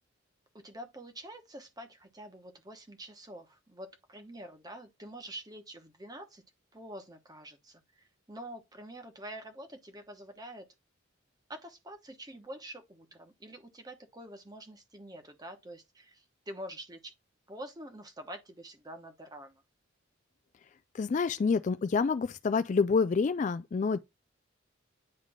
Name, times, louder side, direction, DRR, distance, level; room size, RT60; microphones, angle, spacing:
voice 1, 0.5-6.4 6.7-10.7 11.5-17.1 17.5-19.6, right 1 dB, 20° right, 1.1 m, -46 dB
voice 2, 20.9-24.0, left 5 dB, 40° left, 0.3 m, -27 dB
9.7 x 3.3 x 3.6 m
head